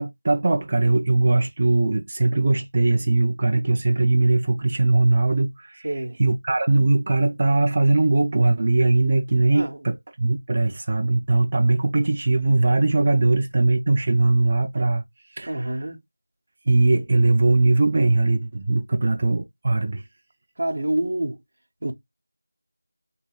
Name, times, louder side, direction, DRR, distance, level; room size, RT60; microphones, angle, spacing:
voice 1, 0.0-15.0 15.4-15.9 16.7-20.0, right 2 dB, 25° right, 0.4 m, -20 dB
voice 2, 5.8-6.2 9.5-9.8 15.5-16.0 20.6-21.4 21.8-22.0, right 1 dB, 50° right, 0.8 m, -27 dB
4.4 x 3.2 x 2.3 m
figure-of-eight pair, 175°, 0 cm